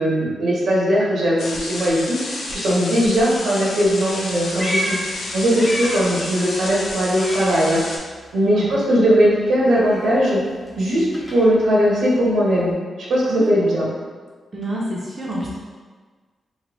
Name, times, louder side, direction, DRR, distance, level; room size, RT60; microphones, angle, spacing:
voice 1, 0.0-5.0 5.3-7.8 8.3-10.4 10.8-11.0 11.3-12.7 13.1-13.9, equal, 80° right, -5 dB, 0.9 m, -19 dB
sound 1, 1.4-8.0, left 2 dB, 80° left, 0.5 m, -31 dB
Meow, 4.1-6.3 6.6-8.3 8.5-12.7, equal, 15° left, 0.6 m, -33 dB
voice 2, 14.5-15.6, right 1 dB, 30° right, -5 dB, 0.5 m, -27 dB
3.1 x 2.2 x 2.9 m, 1.4 s
cardioid pair, 100°, 0 cm